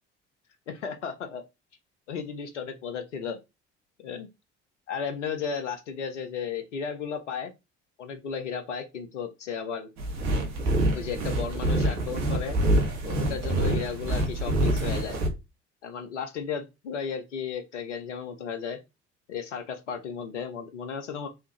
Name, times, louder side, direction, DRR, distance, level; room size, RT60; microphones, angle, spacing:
voice 1, 0.7-1.4 2.1-3.4 4.0-4.3 4.9-7.5 8.0-9.9 10.9-12.6 13.1-15.2 15.8-18.8 19.3-21.3, left 6 dB, 80° left, 6 dB, 0.6 m, -34 dB
sound 1, 10.0-15.3, right 1 dB, 50° right, 1.3 m, -26 dB
3.4 x 2.7 x 3.0 m, 0.24 s
figure-of-eight pair, 55°, 35 cm